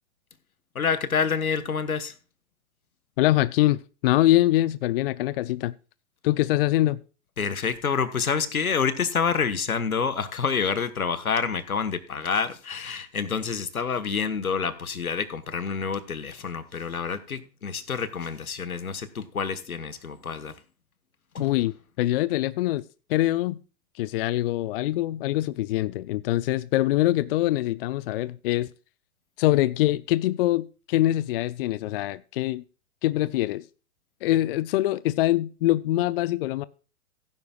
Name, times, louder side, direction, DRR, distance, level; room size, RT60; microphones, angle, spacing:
voice 1, 0.7-2.1 7.4-20.6 21.3-21.5, left 6 dB, 85° left, 1.5 m, -28 dB
voice 2, 3.2-5.8 6.2-7.0 21.4-22.8 23.1-23.6 23.9-28.7 29.4-32.6 33.0-33.7 34.2-36.6, left 15 dB, 45° left, 0.5 m, -24 dB
16.5 x 9.7 x 2.4 m
figure-of-eight pair, 110°, 42 cm